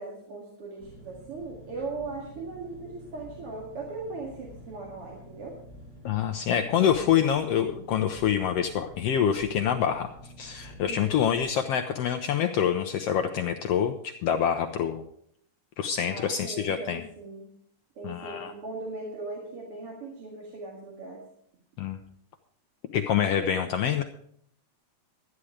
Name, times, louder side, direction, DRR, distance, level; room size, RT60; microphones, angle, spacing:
voice 1, 0.0-5.6 10.8-11.2 16.1-17.5 18.0-21.2, right 3 dB, 50° right, -3 dB, 2.8 m, -39 dB
Engine, 0.8-11.4, equal, 85° right, 7.0 m, -49 dB
voice 2, 6.0-10.1 10.4-15.0 15.8-17.0 18.0-18.5 21.8-22.0 22.9-24.0, left 9 dB, 75° left, 6 dB, 1.5 m, -26 dB
13.0 x 9.8 x 4.9 m, 0.68 s
omnidirectional pair, 3.4 m